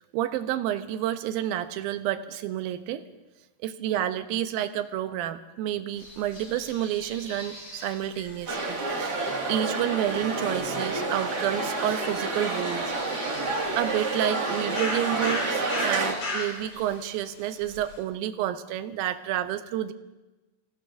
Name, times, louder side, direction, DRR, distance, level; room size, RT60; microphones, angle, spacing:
voice 1, 0.0-3.0 3.6-12.9 13.8-19.9, right 11 dB, 90° right, 10 dB, 2.5 m, -30 dB
sound 1, 6.0-18.0, left 2 dB, 70° left, 6.0 m, -39 dB
sound 2, 8.5-16.1, right 3 dB, 35° right, 1.9 m, -29 dB
28.5 x 16.5 x 2.6 m, 1.1 s
omnidirectional pair, 4.2 m